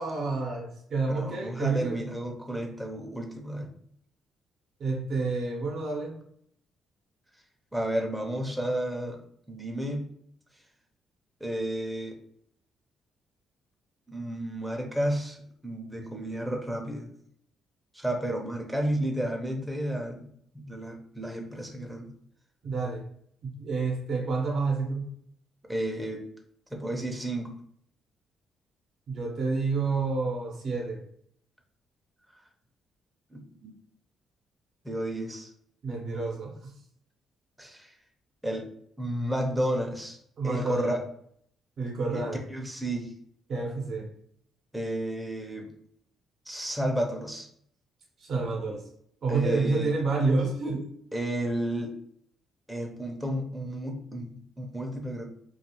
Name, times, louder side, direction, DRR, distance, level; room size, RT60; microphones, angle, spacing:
voice 1, 0.0-2.0 4.8-6.1 22.6-23.0 23.6-25.1 29.1-31.0 35.8-36.7 40.4-40.9 41.8-42.4 43.5-44.0 48.2-48.8 49.2-50.9, right 3 dB, 60° right, 0 dB, 0.7 m, -29 dB
voice 2, 1.1-3.7 7.7-9.2 9.5-10.1 11.4-12.2 14.1-15.4 15.6-17.1 17.9-20.3 20.5-22.1 25.7-26.3 26.7-27.5 33.3-33.7 34.8-35.5 37.6-37.9 38.4-38.7 39.0-40.2 40.4-41.0 42.1-43.1 44.7-45.7 46.5-47.5 49.3-49.9 51.1-51.9 52.7-55.3, right 1 dB, 5° right, 2 dB, 0.5 m, -32 dB
2.3 x 2.3 x 2.9 m, 0.65 s
cardioid pair, 90°, 0 cm